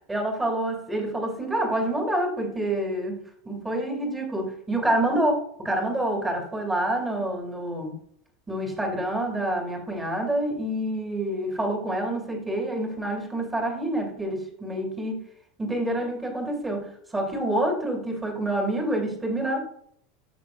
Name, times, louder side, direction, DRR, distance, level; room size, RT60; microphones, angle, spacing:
voice 1, 0.0-8.0 8.5-15.2 15.6-19.6, right 1 dB, 10° right, 3 dB, 2.6 m, -27 dB
13.5 x 6.2 x 2.5 m, 0.66 s
figure-of-eight pair, 75°, 0 cm